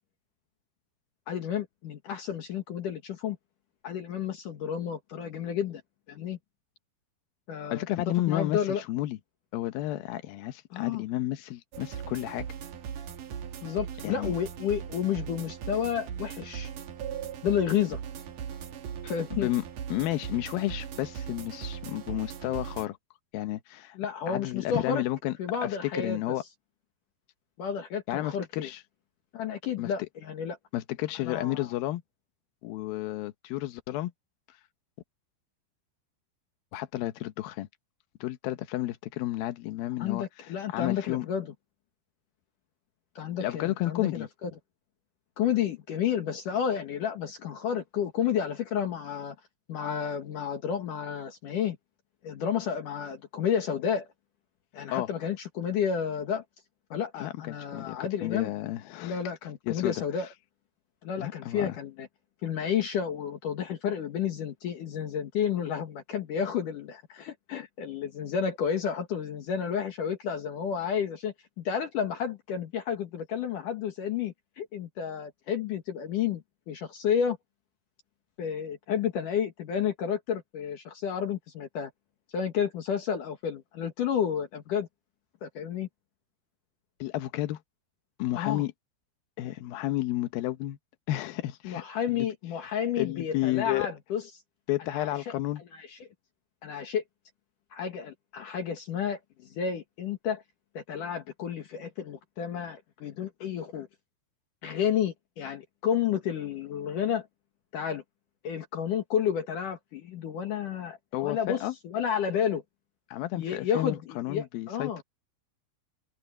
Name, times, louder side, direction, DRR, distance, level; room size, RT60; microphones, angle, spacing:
voice 1, 1.3-3.4 3.8-5.8 6.1-6.4 7.5-8.8 10.7-11.0 13.6-16.7 17.4-18.0 19.0-19.5 24.0-25.0 25.4-26.2 27.6-28.7 29.3-30.6 31.2-31.7 40.0-41.5 43.2-44.5 45.4-49.4 49.7-51.8 52.2-54.1 54.7-56.4 56.9-58.5 59.0-60.3 61.0-62.1 62.4-77.4 78.4-81.9 82.3-84.9 85.4-85.9 88.3-88.6 91.6-94.2 94.9-95.3 95.7-96.0 96.6-97.0 97.7-100.4 100.7-103.9 104.6-107.3 107.7-108.0 108.4-112.6 113.4-115.0, left 8 dB, 60° left, 2.3 m, -31 dB
voice 2, 7.7-9.2 9.5-12.5 14.0-14.3 19.3-19.6 19.9-23.0 23.3-24.0 24.3-25.3 25.6-26.4 28.1-28.8 29.8-29.9 30.7-32.0 32.6-34.1 34.5-34.6 36.7-37.7 38.2-41.3 43.4-44.3 54.9-55.1 57.2-59.2 59.7-59.9 61.2-61.7 87.0-87.6 88.2-88.7 89.4-90.8 91.1-92.3 93.0-93.9 94.7-95.6 111.1-111.7 113.1-114.9, left 15 dB, 90° left, 2.0 m, -32 dB
sound 1, 11.7-22.9, right 8 dB, 55° right, 2.5 m, -39 dB
open air
omnidirectional pair, 5.7 m